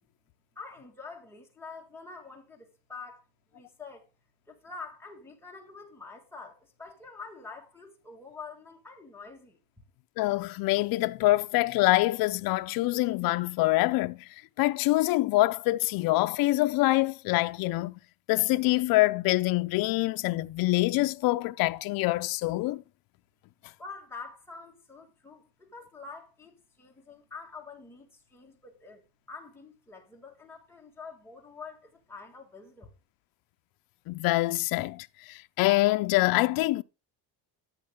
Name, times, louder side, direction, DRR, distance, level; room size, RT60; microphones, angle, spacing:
voice 1, 0.6-3.3 3.5-4.1 4.5-9.6 23.8-29.0 29.3-32.9, left 4 dB, 5° left, 1.7 m, -46 dB
voice 2, 10.2-14.3 14.6-17.9 18.3-22.8 34.1-36.8, left 19 dB, 60° left, 0.5 m, -25 dB
13.5 x 6.4 x 3.6 m
cardioid pair, 175°, 41 cm